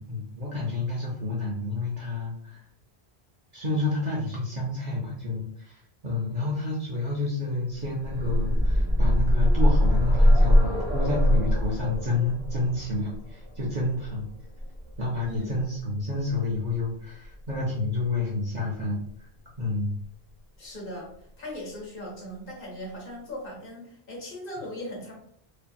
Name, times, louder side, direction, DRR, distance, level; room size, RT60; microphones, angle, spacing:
voice 1, 0.0-2.6 3.5-14.3 15.0-19.3 19.6-20.0, left 2 dB, 50° right, -4 dB, 0.6 m, -29 dB
sound 1, 7.8-15.6 16.8-16.9 17.2-17.3, equal, 25° right, 0.9 m, -23 dB
voice 2, 20.6-25.1, left 1 dB, 60° left, -3 dB, 1.2 m, -39 dB
2.7 x 2.6 x 2.2 m, 0.66 s
omnidirectional pair, 1.1 m